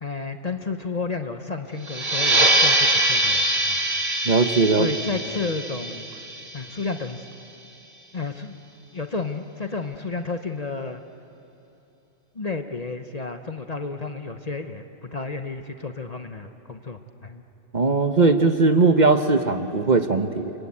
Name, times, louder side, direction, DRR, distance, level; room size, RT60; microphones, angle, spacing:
voice 1, 0.0-3.8 4.7-6.3 6.5-7.2 8.1-8.5 8.9-11.0 12.3-17.4, left 4 dB, 35° left, 7 dB, 0.9 m, -32 dB
sound 1, 1.8-7.1, right 1 dB, 60° right, 2.0 m, -23 dB
voice 2, 4.2-4.9 17.7-20.5, right 3 dB, 40° right, 7 dB, 1.0 m, -19 dB
30.0 x 23.5 x 8.5 m, 3.0 s
omnidirectional pair, 1.3 m